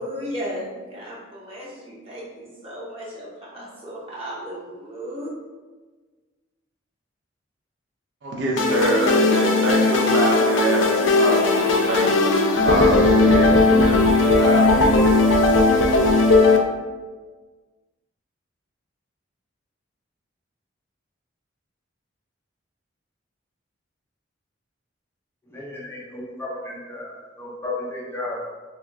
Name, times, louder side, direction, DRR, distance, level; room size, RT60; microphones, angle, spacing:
voice 1, 0.0-5.3, equal, 30° right, -5 dB, 0.8 m, -35 dB
voice 2, 8.2-12.1 12.6-15.1, right 1 dB, 65° right, -1 dB, 0.5 m, -25 dB
sound 1, 8.6-16.6, left 3 dB, 80° left, 0.4 m, -17 dB
voice 3, 25.5-28.5, left 2 dB, 15° left, -5 dB, 0.5 m, -33 dB
2.8 x 2.3 x 3.3 m, 1.4 s
head